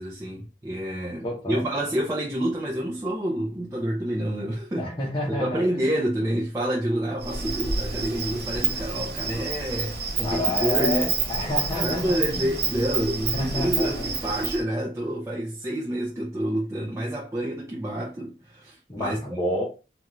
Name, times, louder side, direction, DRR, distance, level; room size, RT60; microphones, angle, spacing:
voice 1, 0.0-4.9 5.3-11.1 11.7-19.4, right 1 dB, 15° right, 0.4 m, -28 dB
voice 2, 1.2-1.6 4.8-5.9 10.2-12.5 13.3-14.0 18.9-19.6, left 1 dB, 25° left, 0.7 m, -29 dB
Insect, 7.2-14.6, right 5 dB, 60° right, 0.8 m, -28 dB
2.4 x 2.3 x 3.0 m
head